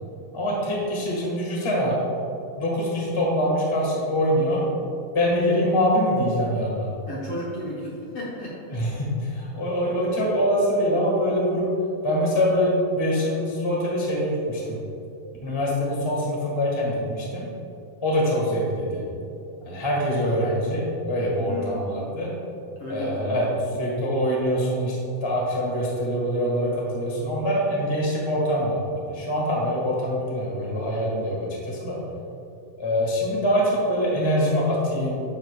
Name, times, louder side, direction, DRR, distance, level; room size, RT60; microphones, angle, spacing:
voice 1, 0.3-2.3 2.6-4.6 5.1-6.9 8.7-11.7 12.0-14.8 15.4-17.4 18.0-19.0 19.6-22.3 22.9-23.5 23.7-32.0 32.8-33.6 33.9-35.2, equal, 15° left, -4 dB, 0.9 m, -24 dB
voice 2, 7.1-8.8 21.4-21.8 22.8-23.5, left 1 dB, 60° left, -6 dB, 1.7 m, -34 dB
11.0 x 7.4 x 2.4 m, 2.7 s
omnidirectional pair, 3.6 m